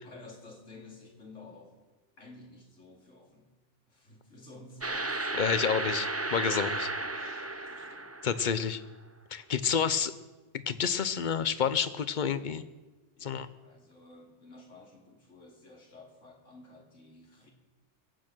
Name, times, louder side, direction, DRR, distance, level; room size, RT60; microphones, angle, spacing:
voice 1, 0.0-1.8 2.2-3.5 3.9-5.8 6.3-8.1 9.6-10.1 13.2-17.5, left 2 dB, 80° left, 1 dB, 3.0 m, -53 dB
sound 1, 4.8-8.7, right 2 dB, 20° right, 0.4 m, -34 dB
voice 2, 5.3-6.9 7.3-7.4 8.2-8.8 9.3-10.1 10.7-12.6 13.2-13.5, left 7 dB, 45° left, 14 dB, 0.8 m, -29 dB
22.5 x 8.9 x 6.2 m, 1.2 s
omnidirectional pair, 1.3 m